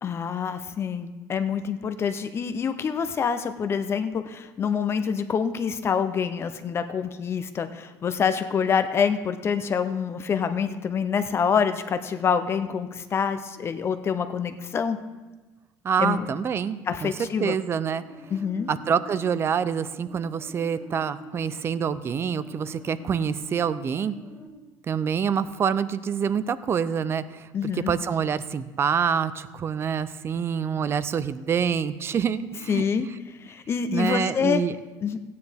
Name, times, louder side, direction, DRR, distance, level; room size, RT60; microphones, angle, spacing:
voice 1, 0.0-15.0 16.0-16.3 16.9-17.6 18.3-18.7 27.5-27.9 32.7-33.1 33.4-34.6 35.0-35.2, left 6 dB, 35° left, 10 dB, 0.5 m, -26 dB
voice 2, 15.8-17.1 17.4-18.0 18.7-24.1 24.9-27.5 27.9-32.8 33.9-34.7, right 7 dB, 30° right, 15 dB, 0.4 m, -26 dB
sound 1, 17.7-24.5, left 1 dB, 15° right, 1.4 m, -45 dB
15.5 x 9.4 x 3.4 m, 1.2 s
cardioid pair, 135°, 8 cm